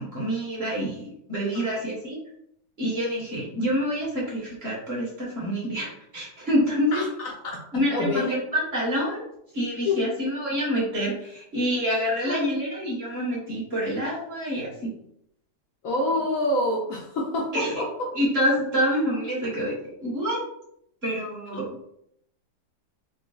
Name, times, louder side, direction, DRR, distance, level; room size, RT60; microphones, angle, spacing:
voice 1, 0.0-2.2 2.8-7.0 7.7-9.2 9.5-14.9 17.5-17.8 18.1-19.7 20.0-20.4 21.0-21.6, equal, 40° right, -5 dB, 1.5 m, -27 dB
voice 2, 6.9-7.6 7.9-8.3 9.8-10.0 12.3-12.6 15.8-18.1, left 2 dB, 65° left, -1 dB, 0.9 m, -27 dB
3.8 x 2.2 x 3.8 m, 0.74 s
omnidirectional pair, 1.7 m